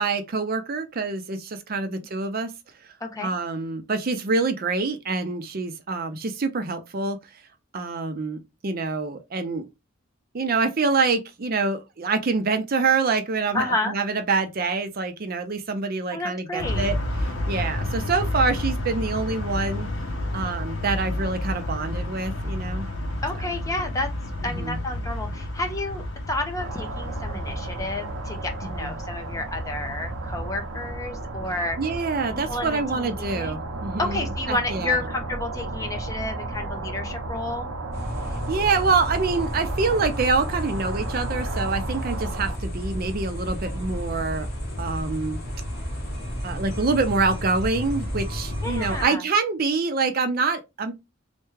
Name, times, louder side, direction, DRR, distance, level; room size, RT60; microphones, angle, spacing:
voice 1, 0.0-2.5 3.2-7.2 7.7-9.7 10.3-17.0 17.5-19.9 20.3-22.9 23.4-23.5 24.4-24.8 28.7-28.9 31.8-35.0 38.5-44.5 44.8-45.4 46.4-50.9, right 4 dB, 50° right, 0.5 m, -26 dB
voice 2, 3.0-3.3 13.5-13.9 16.1-16.9 23.2-24.1 24.4-31.8 32.3-33.6 34.0-37.7 48.6-49.2, left 2 dB, 15° left, 0.6 m, -30 dB
sound 1, 16.6-31.4, left 1 dB, 70° left, 0.7 m, -31 dB
sound 2, 26.6-42.6, right 2 dB, 85° right, 0.6 m, -33 dB
sound 3, 37.9-49.0, equal, 55° left, 1.1 m, -32 dB
3.3 x 2.2 x 3.1 m
head